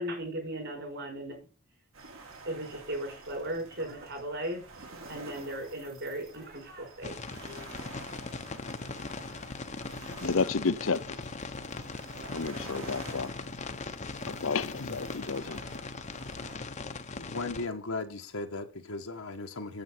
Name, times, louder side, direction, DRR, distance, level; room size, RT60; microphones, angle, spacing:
voice 1, 0.0-1.4 2.5-4.6 5.1-7.7, right 1 dB, 55° right, 5.4 m, -37 dB
sound 1, 1.9-16.6, right 3 dB, 75° right, 4.4 m, -49 dB
sound 2, 7.0-17.7, left 3 dB, 35° left, 0.9 m, -40 dB
voice 2, 10.2-11.0 12.3-13.3 14.3-15.6, left 4 dB, 65° left, 0.7 m, -31 dB
voice 3, 17.1-19.8, left 3 dB, 85° left, 1.7 m, -37 dB
9.1 x 8.2 x 5.9 m
head